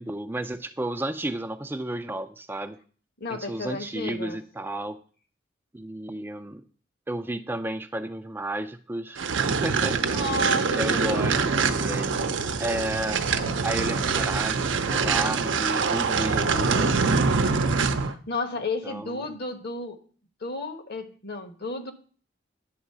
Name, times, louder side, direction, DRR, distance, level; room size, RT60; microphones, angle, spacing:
voice 1, 0.0-2.8 3.3-5.0 5.7-6.6 7.1-10.0 10.7-12.2 12.6-13.2 13.6-17.0 18.8-19.2, right 1 dB, 10° right, 8 dB, 0.4 m, -32 dB
voice 2, 3.2-4.4 10.1-11.5 18.0-20.0 20.4-21.9, left 2 dB, 60° left, 7 dB, 1.2 m, -32 dB
sound 1, 9.2-18.1, right 5 dB, 80° right, 0.7 m, -24 dB
10.0 x 3.9 x 6.6 m, 0.42 s
head